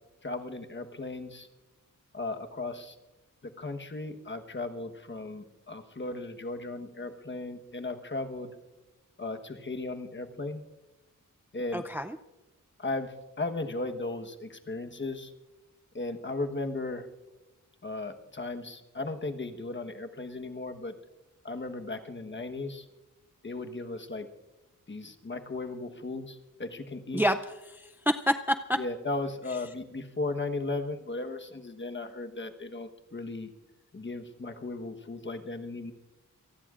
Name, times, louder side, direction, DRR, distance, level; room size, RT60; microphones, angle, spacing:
voice 1, 0.2-1.5 2.1-3.0 3.4-8.5 9.2-10.6 11.5-11.8 12.8-15.3 15.9-17.1 17.8-20.9 21.4-22.9 23.4-24.3 24.9-27.2 28.8-33.5 33.9-35.9, left 2 dB, 35° left, 7 dB, 1.2 m, -36 dB
voice 2, 11.7-12.2 27.1-28.8, equal, 5° right, 8 dB, 0.5 m, -28 dB
26.5 x 19.0 x 2.5 m, 1.1 s
wide cardioid pair, 100°, 33 cm